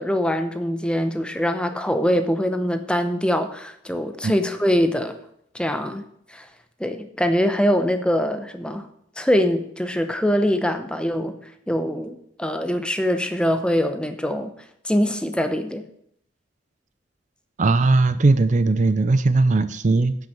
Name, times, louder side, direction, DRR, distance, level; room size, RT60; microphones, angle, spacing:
voice 1, 0.0-5.2 5.5-6.0 6.3-6.5 6.8-8.9 9.2-11.4 11.7-14.5 14.8-15.9, equal, 5° left, 8 dB, 0.7 m, -23 dB
voice 2, 17.6-20.1, right 3 dB, 40° right, 13 dB, 0.5 m, -18 dB
9.7 x 6.4 x 7.3 m, 0.72 s
head